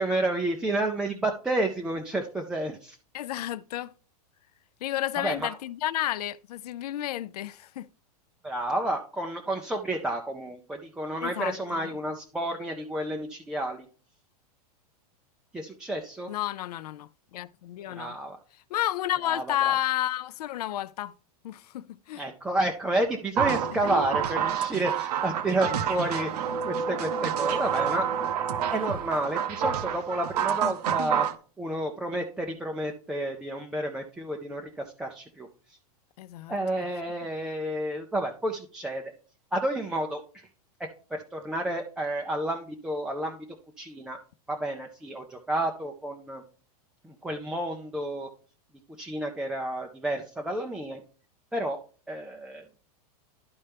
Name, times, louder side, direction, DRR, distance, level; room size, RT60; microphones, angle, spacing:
voice 1, 0.0-3.0 5.2-5.5 8.4-13.9 15.5-16.3 17.9-18.4 19.2-19.8 22.2-28.1 28.3-28.4 28.7-31.3 31.6-35.8 36.5-39.0 39.5-40.5 40.8-43.5 43.8-44.2 44.5-46.4 47.0-48.3 49.0-51.0 51.5-51.8 52.1-52.7, right 1 dB, 5° right, 0.3 m, -30 dB
voice 2, 3.1-3.9 4.8-7.9 11.2-11.6 16.3-18.2 18.7-21.1 21.4-22.2 36.2-36.5, left 13 dB, 80° left, 0.5 m, -31 dB
sound 1, 23.4-31.4, right 8 dB, 85° right, 0.8 m, -28 dB
12.0 x 4.3 x 3.4 m
supercardioid pair, 160°, 20 cm